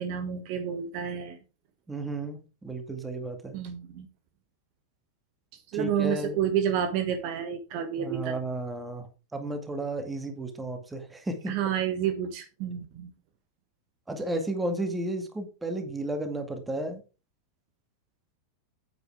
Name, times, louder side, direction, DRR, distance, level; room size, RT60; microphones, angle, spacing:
voice 1, 0.0-1.4 3.5-4.1 5.7-8.3 11.5-13.1, right 9 dB, 45° right, 8 dB, 1.4 m, -29 dB
voice 2, 1.9-3.6 5.7-6.4 8.0-11.5 14.1-17.0, right 1 dB, 10° right, 6 dB, 2.2 m, -33 dB
9.1 x 8.7 x 3.6 m, 0.31 s
figure-of-eight pair, 90°, 0 cm